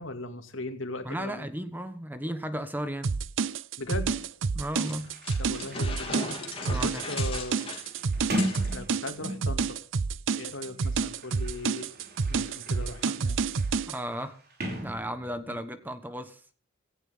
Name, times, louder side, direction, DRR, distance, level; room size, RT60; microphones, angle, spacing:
voice 1, 0.0-1.5 3.8-4.3 5.4-6.3 6.7-7.8 8.6-9.8 10.3-11.9 12.2-13.4 15.5-15.6, left 2 dB, 75° left, 6 dB, 2.5 m, -38 dB
voice 2, 1.0-3.1 4.5-5.1 6.7-7.0 13.8-14.4 14.8-16.4, equal, 10° right, 10 dB, 1.3 m, -34 dB
sound 1, 3.0-14.0, right 5 dB, 70° right, 0.6 m, -29 dB
Sliding door, 4.3-4.4 4.6-9.7 10.6-15.6, right 1 dB, 50° right, 6.3 m, -38 dB
sound 2, 4.8-8.7, left 3 dB, 25° left, 3.4 m, -38 dB
17.5 x 15.5 x 3.8 m, 0.40 s
head